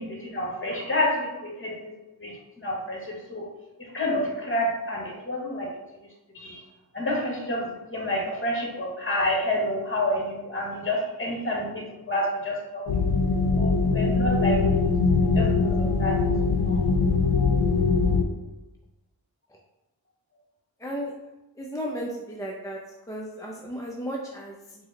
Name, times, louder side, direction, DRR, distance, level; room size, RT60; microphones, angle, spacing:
voice 1, 0.0-1.9 2.2-3.4 3.9-5.7 6.3-6.6 6.9-12.8 13.6-14.9 15.3-15.5 16.0-16.2 16.6-16.8, left 1 dB, 35° left, -2 dB, 1.2 m, -29 dB
sound 1, 12.9-18.2, left 4 dB, 75° left, 0.5 m, -22 dB
voice 2, 20.8-21.1 21.6-22.8 23.1-24.9, equal, 10° left, -2 dB, 0.4 m, -34 dB
4.7 x 2.1 x 3.7 m, 1.0 s
wide cardioid pair, 75°, 38 cm